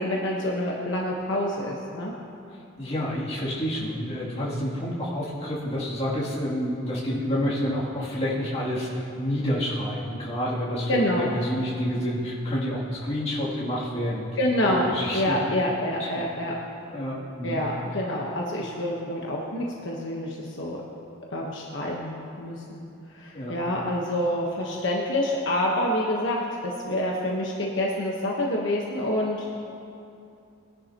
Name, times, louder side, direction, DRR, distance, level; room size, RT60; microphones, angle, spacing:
voice 1, 0.0-2.1 10.9-11.3 14.4-14.9 15.1-16.5 17.4-20.8 21.3-22.8 23.1-29.5, left 1 dB, 65° left, -3 dB, 1.3 m, -27 dB
voice 2, 2.8-14.3 14.6-15.4 16.1-16.3 16.9-17.7 23.3-23.5, equal, 30° left, -8 dB, 2.9 m, -29 dB
21.0 x 11.0 x 3.0 m, 2.6 s
head